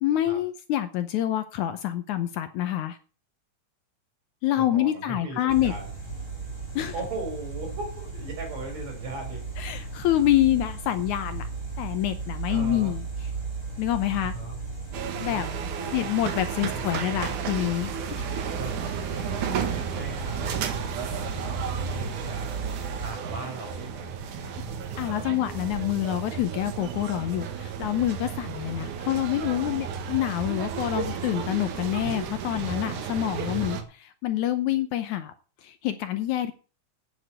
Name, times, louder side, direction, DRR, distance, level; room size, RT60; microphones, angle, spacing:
voice 1, 0.0-3.0 4.4-5.7 6.8-6.9 9.6-11.4 11.8-13.0 13.8-14.3 15.2-15.5 15.9-18.3 25.0-35.3 35.6-36.5, left 13 dB, 70° left, 11 dB, 2.0 m, -27 dB
voice 2, 4.6-5.9 6.9-9.4 12.5-12.9 14.2-14.6 15.3-16.1 16.7-17.3 18.5-18.8 19.2-22.5 23.0-24.6 33.4-33.8, right 2 dB, 55° right, 2 dB, 6.2 m, -38 dB
sound 1, 5.5-23.1, right 4 dB, 5° right, 4.4 m, -36 dB
sound 2, 14.9-33.8, right 7 dB, 70° right, 2.8 m, -33 dB
9.1 x 8.2 x 7.9 m, 0.37 s
omnidirectional pair, 3.8 m